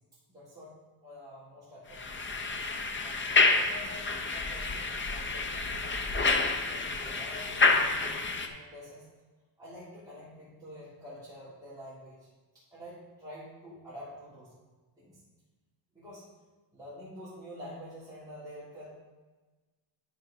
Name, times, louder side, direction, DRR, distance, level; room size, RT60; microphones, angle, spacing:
voice 1, 0.3-2.2 3.0-5.8 6.7-9.1 9.6-12.3 12.5-14.5 15.0-15.2 15.9-16.3 16.7-18.9, left 1 dB, 10° right, -11 dB, 2.5 m, -48 dB
sound 1, 1.9-8.5, left 3 dB, 25° left, 0.5 m, -28 dB
10.5 x 4.7 x 5.0 m, 1.2 s
wide cardioid pair, 165°, 50 cm